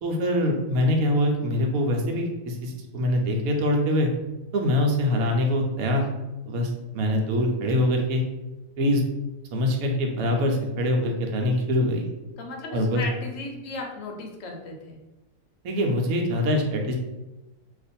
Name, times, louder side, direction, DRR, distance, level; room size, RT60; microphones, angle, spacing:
voice 1, 0.0-4.1 4.5-6.1 6.5-8.2 8.8-9.0 9.5-12.1 12.7-13.0 15.6-17.0, left 1 dB, 70° right, 2 dB, 1.0 m, -24 dB
voice 2, 12.4-15.0, left 2 dB, 65° left, 1 dB, 0.9 m, -36 dB
2.5 x 2.4 x 4.1 m, 1.1 s
omnidirectional pair, 1.6 m